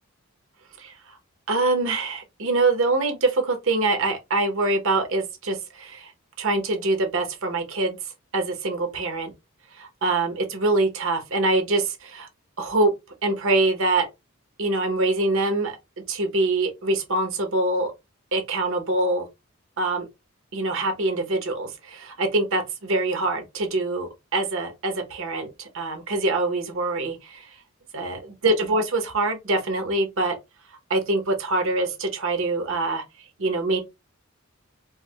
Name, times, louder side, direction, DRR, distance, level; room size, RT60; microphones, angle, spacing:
voice 1, 0.8-1.2 1.5-6.1 6.4-8.0 8.3-9.3 9.7-12.3 12.6-12.9 13.2-14.1 14.6-15.8 16.1-17.9 18.3-19.3 19.8-20.1 20.5-27.5 27.9-30.4 30.9-33.0 33.4-33.8, right 2 dB, 65° right, 0.9 m, -24 dB
4.5 x 2.1 x 2.2 m
head